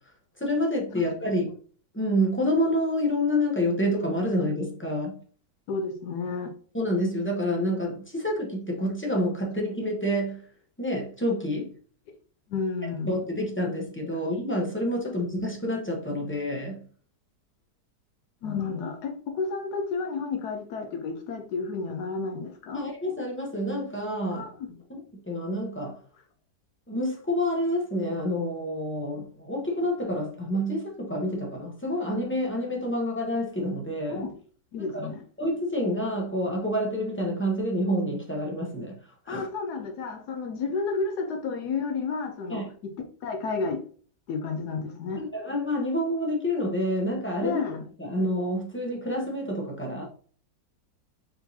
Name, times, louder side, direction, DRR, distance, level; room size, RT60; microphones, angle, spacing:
voice 1, 0.4-1.5 1.9-5.1 6.7-10.4 10.8-11.7 13.1-16.8 22.7-24.5 24.9-25.0 25.3-26.0 26.9-34.3 34.8-35.1 35.4-39.0 39.3-39.5 42.5-42.7 45.2-47.6 48.0-50.0, equal, 15° left, 0.4 m, -28 dB
voice 2, 0.9-1.4 5.7-6.5 12.5-13.1 14.1-14.2 18.4-22.8 24.3-24.7 34.1-34.3 34.7-35.2 39.3-42.9 43.2-43.8 44.3-45.2 47.4-47.9, left 4 dB, 75° left, 1.2 m, -31 dB
4.4 x 3.9 x 2.7 m
omnidirectional pair, 1.8 m